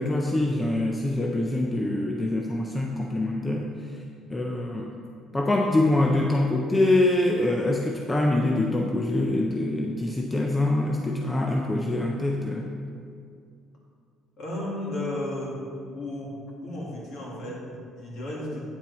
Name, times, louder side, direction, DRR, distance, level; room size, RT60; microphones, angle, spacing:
voice 1, 0.0-3.7 4.3-4.9 5.3-12.7, left 2 dB, 10° left, 1 dB, 0.4 m, -24 dB
voice 2, 14.4-15.6 15.9-16.3 16.6-18.7, left 1 dB, 50° left, -4 dB, 2.2 m, -33 dB
9.0 x 7.3 x 4.1 m, 2.4 s
cardioid pair, 175°, 0 cm